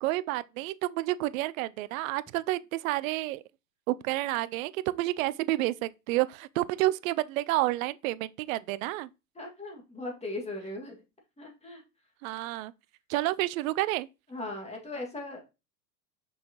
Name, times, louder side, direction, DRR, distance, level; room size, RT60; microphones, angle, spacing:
voice 1, 0.0-3.4 3.9-9.1 12.2-12.7 13.1-14.1, right 17 dB, 55° right, 0.5 m, -30 dB
voice 2, 9.4-11.0 11.4-11.8 14.3-15.4, left 2 dB, 10° left, 2.1 m, -38 dB
6.1 x 5.5 x 3.0 m
hypercardioid pair, 95°, 50 cm